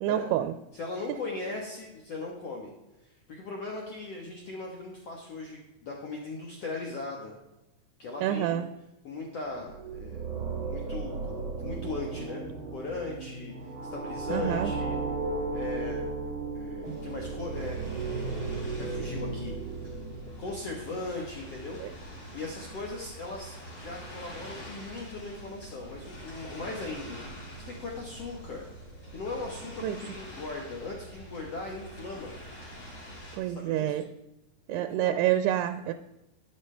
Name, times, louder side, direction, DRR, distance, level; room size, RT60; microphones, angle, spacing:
voice 1, 0.0-0.5 1.1-1.2 8.2-8.7 14.3-14.7 16.9-17.0 21.8-21.9 29.8-30.0 33.4-34.1 34.7-35.9, right 12 dB, 85° right, 9 dB, 2.5 m, -28 dB
voice 2, 0.7-2.7 3.0-7.3 8.0-8.6 9.0-10.3 10.7-12.4 12.7-13.5 13.9-15.0 15.5-16.1 16.5-17.8 18.8-19.5 20.4-21.8 22.3-27.2 27.6-28.7 29.1-32.3 33.4-34.0 34.7-35.2, left 3 dB, 85° left, -1 dB, 1.3 m, -38 dB
sound 1, 9.5-20.7, right 4 dB, 60° right, 1.4 m, -35 dB
sound 2, 16.8-33.4, equal, 35° left, 3.7 m, -45 dB
12.0 x 9.8 x 3.3 m, 0.95 s
omnidirectional pair, 4.9 m